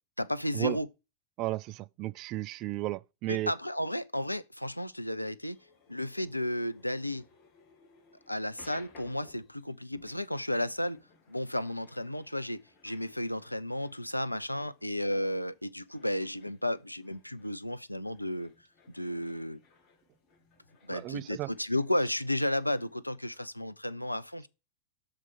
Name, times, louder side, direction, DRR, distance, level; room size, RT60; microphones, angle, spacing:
voice 1, 0.2-0.9 3.3-5.6 5.9-7.2 8.3-11.0 11.3-18.5 18.9-19.6 20.8-24.5, left 1 dB, 90° left, 0.4 m, -33 dB
voice 2, 1.4-3.5 20.9-21.5, right 17 dB, 40° right, 0.3 m, -34 dB
sound 1, 5.4-22.9, left 4 dB, 35° left, 2.3 m, -61 dB
6.6 x 4.6 x 5.4 m
figure-of-eight pair, 90°, 0 cm